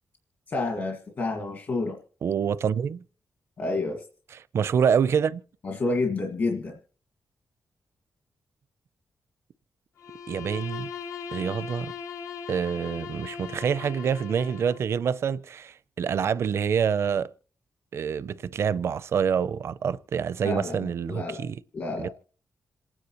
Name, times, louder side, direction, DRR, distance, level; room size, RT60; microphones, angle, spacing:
voice 1, 0.5-2.0 3.6-4.0 5.6-6.8 20.4-21.4 21.7-22.1, left 3 dB, 50° left, 1.7 m, -29 dB
voice 2, 2.2-3.0 4.5-5.4 10.3-10.9 11.3-11.9 12.5-17.3 17.9-21.6 22.0-22.1, right 7 dB, 60° right, 0.5 m, -26 dB
Bowed string instrument, 10.0-14.9, left 7 dB, 70° left, 0.8 m, -39 dB
27.5 x 9.8 x 3.0 m
wide cardioid pair, 155°, 5 cm